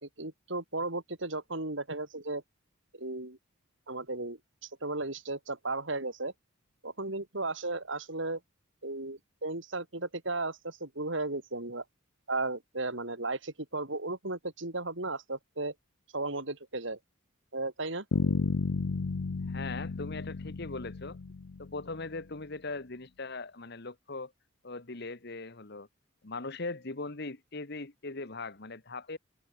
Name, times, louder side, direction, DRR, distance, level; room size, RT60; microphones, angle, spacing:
voice 1, 0.0-2.4 2.9-3.4 3.9-4.4 4.8-6.3 6.8-8.4 8.8-11.8 12.3-15.7 16.1-17.0 17.5-18.0, right 2 dB, 60° right, 3.4 m, -35 dB
Bass guitar, 18.1-22.0, left 3 dB, 85° left, 0.7 m, -32 dB
voice 2, 19.5-21.2 21.6-24.3 24.6-25.9 26.2-29.2, left 3 dB, 55° left, 1.6 m, -40 dB
open air
head